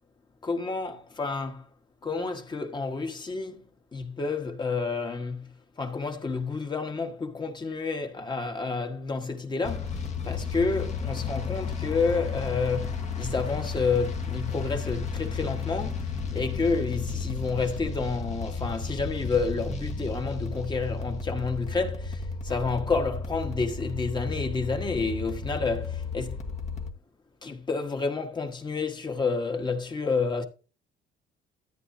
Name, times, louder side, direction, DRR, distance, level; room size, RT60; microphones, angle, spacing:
voice 1, 0.4-1.6 2.0-3.6 3.9-26.4 27.4-30.4, left 4 dB, 25° left, 1.5 m, -30 dB
sound 1, 9.6-26.9, left 4 dB, 45° left, 1.5 m, -33 dB
13.5 x 8.4 x 2.8 m
cardioid pair, 110°, 17 cm